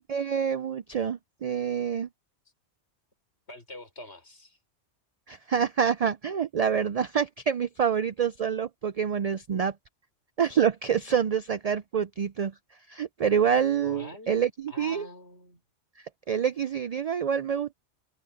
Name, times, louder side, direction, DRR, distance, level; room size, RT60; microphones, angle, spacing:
voice 1, 0.1-2.1 5.3-9.7 10.4-12.5 12.9-15.1 16.3-17.7, right 7 dB, 70° right, 0.3 m, -27 dB
voice 2, 3.5-4.6 13.8-14.4 14.7-15.6, left 2 dB, 65° left, 5.2 m, -45 dB
omnidirectional pair, 1.2 m